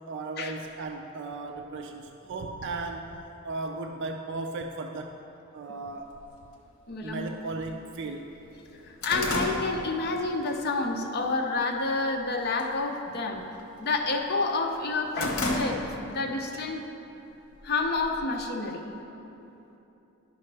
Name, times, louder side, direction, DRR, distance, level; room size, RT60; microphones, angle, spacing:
voice 1, 0.1-3.2 3.4-5.2 5.5-6.1 7.0-8.3, right 3 dB, 55° right, 4 dB, 0.4 m, -36 dB
sound 1, 6.2-6.3 7.2-7.3 7.7-7.8 8.1-10.6 10.9-11.3 11.7-12.2 12.5-12.8 13.1-14.3 14.7-16.2 16.5-16.7 17.5-18.4, left 1 dB, 70° left, 1.0 m, -33 dB
voice 2, 6.9-7.3 8.8-13.4 13.8-15.8 16.1-16.8 17.6-18.8, left 3 dB, 50° left, 2 dB, 0.6 m, -29 dB
11.0 x 5.5 x 3.3 m, 3.0 s
head